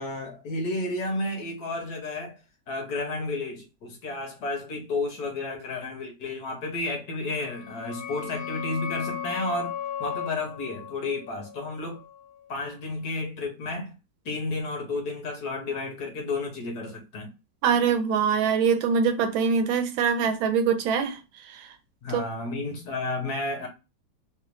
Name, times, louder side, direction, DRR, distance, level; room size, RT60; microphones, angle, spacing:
voice 1, 0.0-2.4 2.7-9.7 10.0-12.0 12.5-13.9 14.2-17.3 22.0-23.7, left 2 dB, 60° left, 1.3 m, -32 dB
sound 1, 7.3-12.7, left 9 dB, 85° left, 1.4 m, -36 dB
voice 2, 17.6-21.2 21.5-21.7 22.1-22.2, right 6 dB, 90° right, 1.5 m, -23 dB
3.4 x 2.5 x 3.0 m
omnidirectional pair, 2.1 m